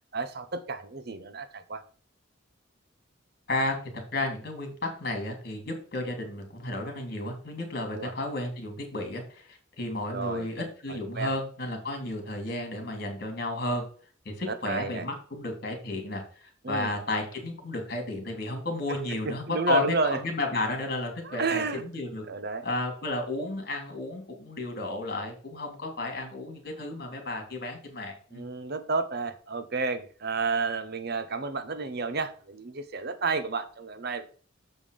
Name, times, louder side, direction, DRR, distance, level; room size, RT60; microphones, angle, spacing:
voice 1, 0.1-1.8 7.9-8.1 10.1-10.5 10.9-11.3 14.5-15.1 16.6-16.9 19.2-20.2 21.2-21.8 22.3-22.6 28.3-34.3, right 4 dB, 50° right, 0.8 m, -31 dB
voice 2, 3.5-13.8 14.2-22.2 22.6-28.4, left 2 dB, 50° left, 3.0 m, -33 dB
7.2 x 5.4 x 4.9 m
head